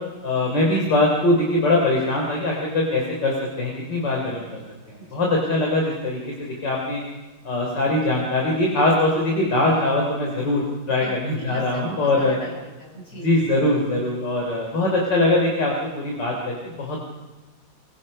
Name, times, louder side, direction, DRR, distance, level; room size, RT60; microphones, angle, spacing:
voice 1, 0.2-4.6 4.9-7.0 7.4-12.4 13.2-17.0, left 2 dB, 60° left, -1 dB, 4.0 m, -22 dB
voice 2, 11.0-13.4, equal, 40° left, -1 dB, 7.3 m, -39 dB
25.0 x 23.5 x 5.4 m, 1.2 s
omnidirectional pair, 2.2 m